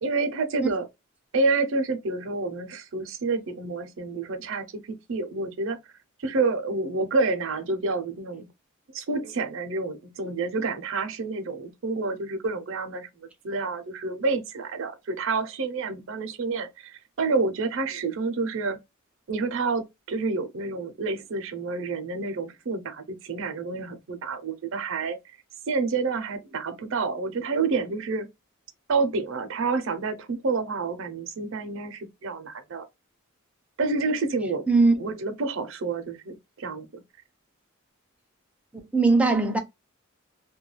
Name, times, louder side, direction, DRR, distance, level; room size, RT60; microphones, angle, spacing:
voice 1, 0.0-0.8 1.3-5.8 6.2-8.5 8.9-13.1 13.4-18.8 19.3-25.2 25.7-28.3 28.9-32.8 33.8-34.7 35.0-37.0, right 3 dB, 65° right, 0.5 m, -28 dB
voice 2, 38.7-39.6, right 3 dB, 5° right, 0.4 m, -20 dB
2.2 x 2.2 x 3.0 m
head